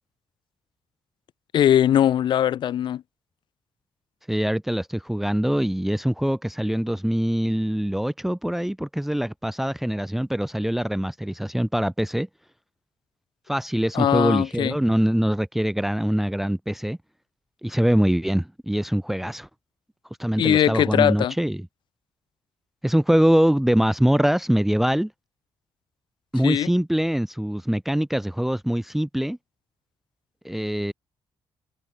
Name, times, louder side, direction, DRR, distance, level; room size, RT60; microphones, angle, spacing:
voice 1, 1.5-3.0 13.9-14.8 20.4-21.3 26.4-26.7, left 10 dB, 60° left, 1.8 m, -20 dB
voice 2, 4.3-12.3 13.5-17.0 17.6-19.5 20.2-21.6 22.8-25.1 26.3-29.4 30.4-30.9, equal, 5° right, 0.7 m, -23 dB
cardioid pair, 170°, 9 cm